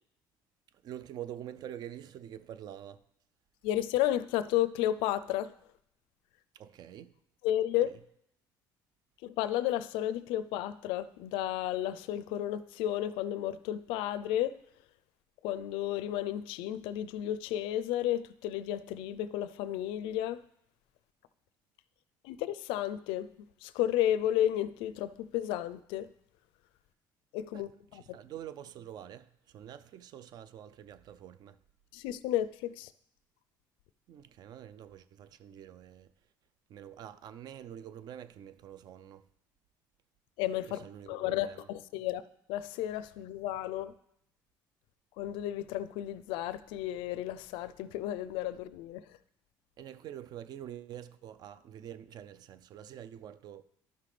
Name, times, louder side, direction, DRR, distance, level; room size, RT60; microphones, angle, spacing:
voice 1, 0.7-3.1 6.5-7.1 7.9-8.0 27.5-27.7 27.9-31.6 34.1-36.1 36.7-39.3 40.7-41.7 49.8-53.6, right 10 dB, 55° right, 0.5 m, -46 dB
voice 2, 3.6-5.5 7.4-7.9 9.2-14.5 15.4-20.4 22.2-23.3 23.6-26.1 27.3-28.0 31.9-32.9 40.4-42.2 42.5-43.9 45.2-49.0, left 12 dB, 85° left, 0.4 m, -32 dB
12.0 x 5.8 x 3.3 m
cardioid pair, 125°, 9 cm